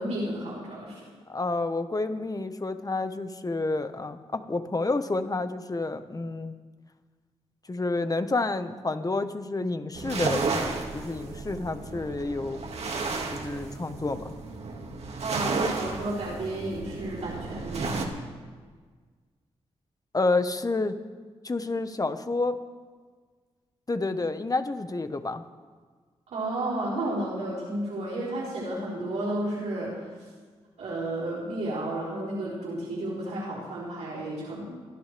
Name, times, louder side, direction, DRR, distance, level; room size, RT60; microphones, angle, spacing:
voice 1, 0.0-1.1 15.2-18.1 26.3-30.3 30.8-34.7, right 1 dB, 85° right, -6 dB, 5.0 m, -32 dB
voice 2, 1.3-6.5 7.7-12.6 13.3-14.3 20.1-20.9 21.4-22.6 23.9-25.4, left 3 dB, 30° left, 9 dB, 1.3 m, -29 dB
sound 1, 9.9-18.1, right 4 dB, 65° right, 2.1 m, -33 dB
29.0 x 11.5 x 3.5 m, 1.5 s
supercardioid pair, 45°, 12 cm